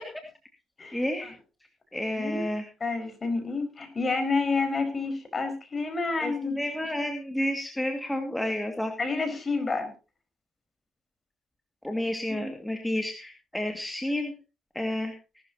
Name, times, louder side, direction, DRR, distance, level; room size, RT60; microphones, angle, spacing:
voice 1, 0.9-1.3 1.9-2.6 6.2-8.9 11.8-14.3 14.7-15.1, left 1 dB, 5° left, 3 dB, 2.3 m, -30 dB
voice 2, 2.8-6.6 9.0-9.9 12.3-12.5, left 3 dB, 35° left, 7 dB, 5.1 m, -29 dB
19.0 x 12.5 x 2.9 m, 0.32 s
cardioid pair, 90°, 0 cm